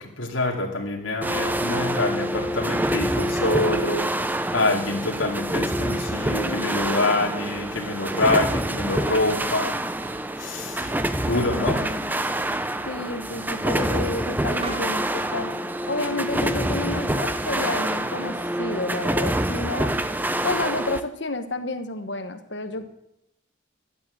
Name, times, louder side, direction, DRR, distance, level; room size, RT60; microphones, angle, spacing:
voice 1, 0.0-9.8 10.4-10.9 11.3-11.8, left 2 dB, 85° left, 0 dB, 2.5 m, -26 dB
sound 1, 1.2-21.0, right 1 dB, 10° right, 0.5 m, -26 dB
sound 2, 2.3-15.4, right 2 dB, 25° right, 1.5 m, -45 dB
voice 2, 11.2-12.1 12.9-15.5 15.9-19.9 20.4-22.8, left 2 dB, 60° left, 9 dB, 1.3 m, -30 dB
12.5 x 8.9 x 7.7 m, 0.83 s
head